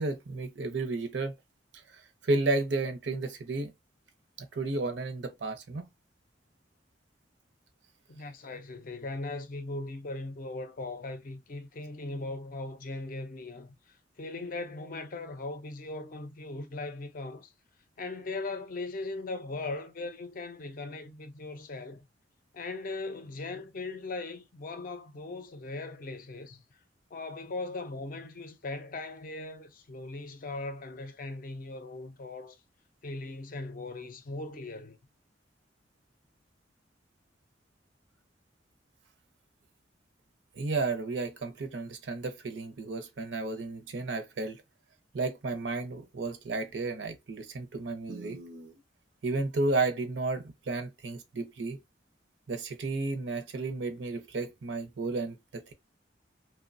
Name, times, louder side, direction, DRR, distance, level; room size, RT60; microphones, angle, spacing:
voice 1, 0.0-1.3 1.9-3.7 4.4-5.8 40.5-44.6 45.1-48.8 49.2-51.8 52.5-55.7, right 3 dB, 70° right, 0.6 m, -32 dB
voice 2, 8.1-13.7 14.2-17.5 18.0-22.0 22.5-26.6 27.1-32.6 33.0-35.0, left 2 dB, 50° left, 0.5 m, -39 dB
2.9 x 2.1 x 2.4 m
head